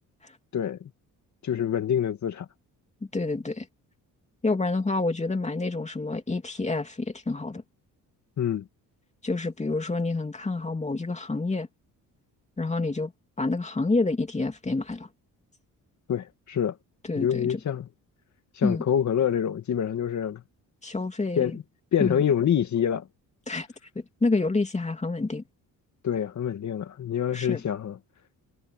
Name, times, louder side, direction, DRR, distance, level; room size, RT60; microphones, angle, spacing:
voice 1, 0.5-0.9 1.4-2.5 8.4-8.7 16.1-16.8 17.1-17.9 18.6-20.4 21.4-21.6 21.9-23.1 26.0-28.0, left 9 dB, 55° left, 2.3 m, -26 dB
voice 2, 3.1-3.7 4.4-7.6 9.2-11.7 12.6-13.1 13.4-15.1 17.1-17.6 18.6-18.8 20.8-21.6 22.0-22.2 23.5-23.7 23.9-25.4 27.3-27.6, left 3 dB, 20° left, 3.1 m, -28 dB
cardioid pair, 110°, 34 cm